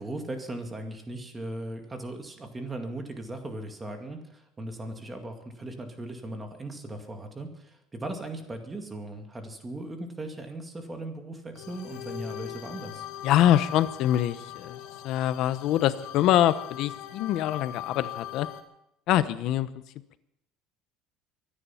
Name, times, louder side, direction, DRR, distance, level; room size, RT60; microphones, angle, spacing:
voice 1, 0.0-4.2 4.6-7.5 7.9-13.0, right 1 dB, 15° right, 4 dB, 2.1 m, -38 dB
sound 1, 11.5-18.6, left 12 dB, 80° left, 1.9 m, -40 dB
voice 2, 13.2-18.5 19.1-19.7, left 12 dB, 55° left, 13 dB, 0.9 m, -24 dB
24.0 x 9.9 x 5.8 m, 0.81 s
cardioid pair, 150°, 0 cm